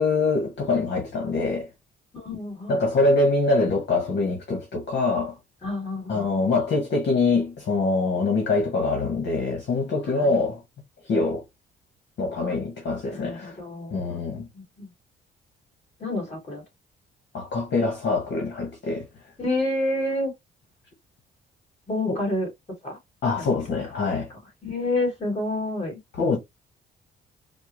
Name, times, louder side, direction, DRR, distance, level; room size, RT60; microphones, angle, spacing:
voice 1, 0.0-1.7 2.7-5.4 6.1-10.6 11.1-11.4 12.2-13.6 13.9-14.5 17.3-19.1 22.1-22.2 23.2-24.3 26.2-26.4, left 3 dB, 60° left, 1.3 m, -24 dB
voice 2, 2.1-2.9 5.6-6.4 10.1-10.3 13.1-14.0 14.3-14.9 16.0-16.6 19.4-20.3 21.9-22.5 22.8-23.0 23.3-23.4 24.3-25.9, left 1 dB, 30° left, 2.6 m, -29 dB
4.4 x 2.2 x 3.1 m
cardioid pair, 90°, 20 cm